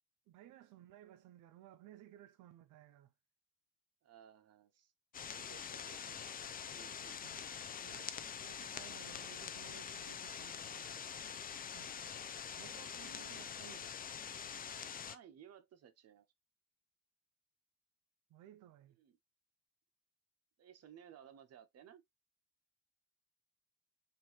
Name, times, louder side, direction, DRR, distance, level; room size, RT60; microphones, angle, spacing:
voice 1, 0.3-3.1 7.2-7.4 7.8-11.3 11.7-12.0 12.5-14.0 18.3-19.0, right 12 dB, 80° right, 0.5 m, -58 dB
voice 2, 4.0-4.9 5.3-6.4 6.7-7.5 13.0-13.4 15.0-16.2 19.0-19.2 20.6-22.0, right 9 dB, 55° right, 0.7 m, -59 dB
Vinyl Hiss, 5.1-15.2, left 7 dB, 30° left, 0.4 m, -45 dB
4.4 x 2.6 x 2.8 m
cardioid pair, 90°, 30 cm